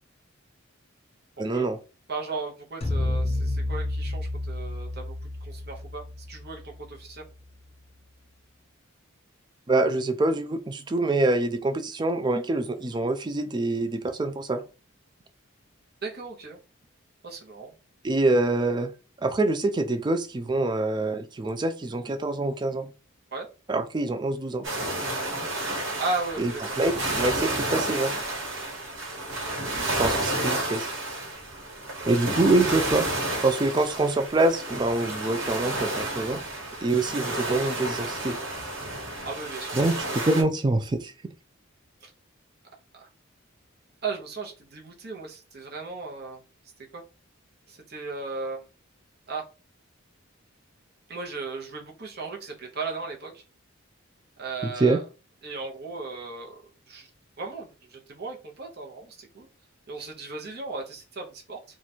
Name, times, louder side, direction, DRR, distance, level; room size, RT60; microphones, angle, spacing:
voice 1, 1.4-1.8 9.7-14.6 18.0-18.9 19.2-22.9 23.7-24.7 26.4-26.5 26.8-28.2 30.0-30.9 32.1-33.1 33.4-36.4 36.8-38.4 39.7-41.1 54.8-55.0, right 2 dB, 20° right, 0.3 m, -25 dB
voice 2, 2.1-5.1 5.4-7.2 16.0-16.6 17.2-17.7 23.3-23.5 26.0-26.8 29.6-30.0 32.0-32.4 39.3-39.8 42.0-42.1 42.9-43.0 44.0-46.4 46.9-47.0 47.7-48.6 49.3-49.4 51.1-53.4 54.4-55.0 55.4-56.6 56.9-57.1 57.4-59.5 59.9-61.6, right 3 dB, 50° right, 0.9 m, -36 dB
sound 1, 2.8-7.1, left 2 dB, 30° left, 0.5 m, -30 dB
sound 2, 24.6-40.4, right 2 dB, 65° right, 1.4 m, -31 dB
2.9 x 2.4 x 4.2 m
head